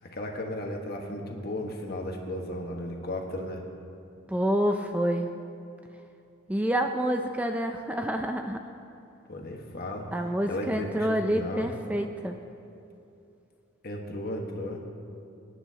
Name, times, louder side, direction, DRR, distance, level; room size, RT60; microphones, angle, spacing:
voice 1, 0.0-3.6 9.3-10.1 10.5-11.7 13.8-14.8, left 1 dB, 50° left, 1 dB, 1.4 m, -35 dB
voice 2, 4.3-5.3 6.5-8.6 10.1-12.4, equal, 5° right, 5 dB, 0.4 m, -28 dB
23.5 x 9.9 x 2.9 m, 2.7 s
head